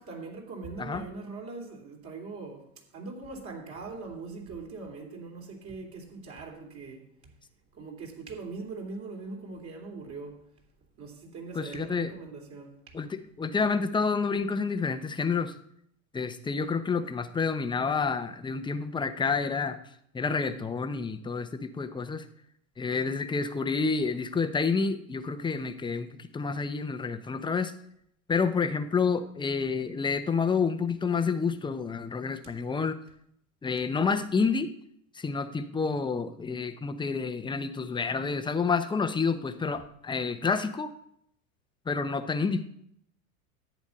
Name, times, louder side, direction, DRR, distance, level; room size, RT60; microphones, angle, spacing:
voice 1, 0.0-7.3 7.7-10.5 11.0-13.0, right 4 dB, 40° right, 3.3 m, -41 dB
voice 2, 11.5-12.1 12.9-15.6 16.1-19.8 20.1-22.3 22.8-27.7 28.3-33.0 33.6-34.7 35.1-40.9 41.9-42.6, left 5 dB, 10° left, 0.7 m, -29 dB
10.5 x 8.4 x 5.2 m
hypercardioid pair, 95°, 43 cm